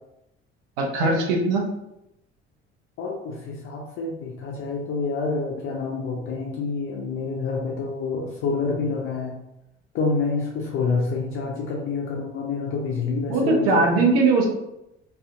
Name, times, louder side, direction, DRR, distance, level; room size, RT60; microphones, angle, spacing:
voice 1, 0.8-1.6 13.3-14.4, right 3 dB, 65° right, 0 dB, 0.7 m, -20 dB
voice 2, 3.0-9.3 9.9-14.0, left 4 dB, 40° left, -2 dB, 0.5 m, -27 dB
2.4 x 2.4 x 2.5 m, 0.85 s
figure-of-eight pair, 55°, 32 cm